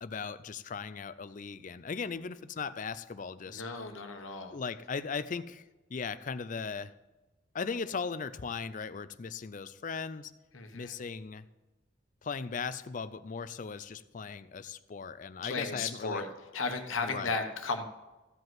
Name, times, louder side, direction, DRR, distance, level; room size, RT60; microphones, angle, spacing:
voice 1, 0.0-3.6 4.5-5.6 5.9-6.9 7.5-10.3 10.7-11.4 12.2-16.2 17.0-17.4, left 5 dB, 40° left, 15 dB, 0.4 m, -38 dB
voice 2, 3.5-4.6 10.5-10.9 15.4-16.3 16.5-17.8, left 4 dB, 85° left, 5 dB, 1.1 m, -35 dB
15.0 x 5.2 x 7.7 m, 1.1 s
head